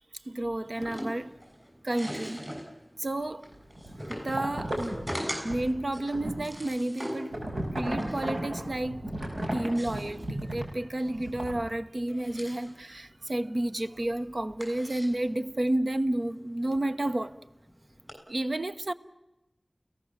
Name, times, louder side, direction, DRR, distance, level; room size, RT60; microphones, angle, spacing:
voice 1, 0.2-1.3 1.8-2.4 3.0-3.5 4.0-5.0 5.4-7.4 7.8-9.1 9.5-17.4 18.3-18.9, right 1 dB, 65° right, 1.0 m, -31 dB
sound 1, 0.6-18.1, equal, 10° right, 6.8 m, -43 dB
sound 2, 3.5-6.5 7.3-10.7 11.1-11.6, right 1 dB, 90° right, 5.8 m, -35 dB
29.5 x 17.5 x 7.4 m
wide cardioid pair, 50°, 0 cm